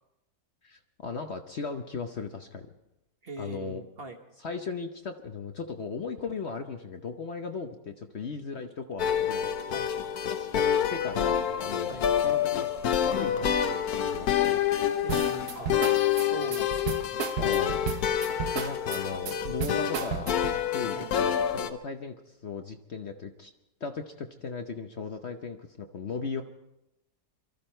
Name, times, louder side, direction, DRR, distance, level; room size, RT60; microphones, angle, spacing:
voice 1, 0.6-2.7 3.4-3.8 4.4-9.7 10.3-11.9 12.2-12.7 12.9-15.0 17.4-17.9 18.5-20.3 20.7-23.5 23.8-26.4, left 5 dB, 50° left, 5 dB, 1.0 m, -37 dB
voice 2, 3.2-4.2 9.7-9.9 11.9-12.1 15.0-15.7 16.1-17.0 20.9-21.1, right 2 dB, 40° right, 4 dB, 1.4 m, -41 dB
sound 1, 9.0-21.7, left 9 dB, 70° left, 1.3 m, -27 dB
sound 2, 15.1-20.6, right 7 dB, 70° right, 1.3 m, -34 dB
23.5 x 13.5 x 4.5 m, 0.89 s
omnidirectional pair, 1.7 m